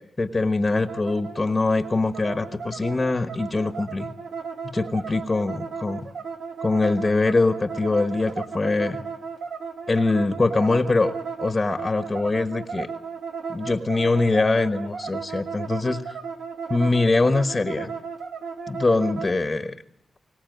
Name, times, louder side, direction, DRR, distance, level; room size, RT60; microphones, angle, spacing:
voice 1, 0.0-4.1 4.7-6.1 6.6-9.0 9.9-11.1 11.4-12.9 13.5-16.1 16.7-17.9 18.7-19.7, left 3 dB, 25° left, 9 dB, 1.3 m, -23 dB
sound 1, 0.7-19.4, right 5 dB, 75° right, 2.0 m, -35 dB
23.0 x 19.0 x 9.4 m, 0.74 s
wide cardioid pair, 110°, 0 cm